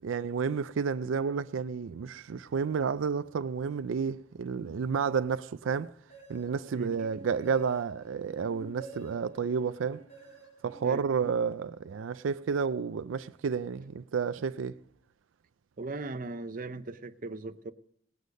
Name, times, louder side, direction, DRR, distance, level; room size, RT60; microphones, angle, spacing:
voice 1, 0.0-5.9 6.3-10.0 10.6-14.8, right 6 dB, 90° right, 0.4 m, -31 dB
sound 1, 6.1-11.9, right 3 dB, 35° left, 4.6 m, -50 dB
voice 2, 15.8-17.7, right 3 dB, 45° right, 0.7 m, -38 dB
19.0 x 8.3 x 5.2 m
head